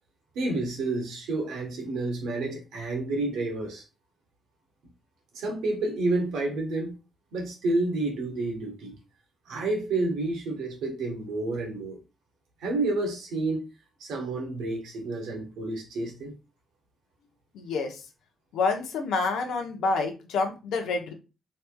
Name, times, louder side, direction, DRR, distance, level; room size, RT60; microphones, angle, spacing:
voice 1, 0.3-3.8 5.3-7.0 7.3-8.9 9.5-12.0 12.6-13.7 14.0-16.3, right 2 dB, 80° right, 1.0 m, -29 dB
voice 2, 17.5-18.0 18.5-21.1, left 4 dB, 80° left, 0.7 m, -28 dB
3.2 x 2.9 x 2.2 m
supercardioid pair, 55°, 0 cm